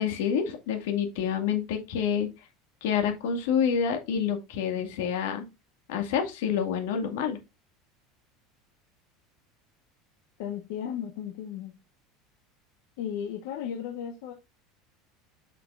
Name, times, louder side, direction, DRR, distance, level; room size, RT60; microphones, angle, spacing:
voice 1, 0.0-2.3 2.8-5.5 5.9-7.4, left 7 dB, 90° left, 5 dB, 2.1 m, -28 dB
voice 2, 10.4-11.7 13.0-14.3, left 9 dB, 70° left, 2 dB, 1.3 m, -35 dB
7.6 x 6.1 x 2.6 m, 0.24 s
cardioid pair, 175°, 0 cm